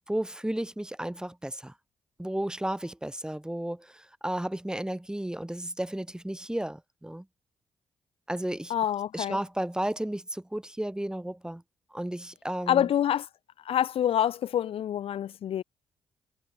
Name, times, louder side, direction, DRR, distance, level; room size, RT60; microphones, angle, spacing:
voice 1, 0.1-1.7 2.2-7.2 8.3-8.7 9.1-11.6 11.9-12.9, right 1 dB, 5° right, 2.6 m, -33 dB
voice 2, 8.7-9.4 12.7-13.3 13.6-15.6, left 10 dB, 65° left, 0.6 m, -26 dB
supercardioid pair, 60°, 10 cm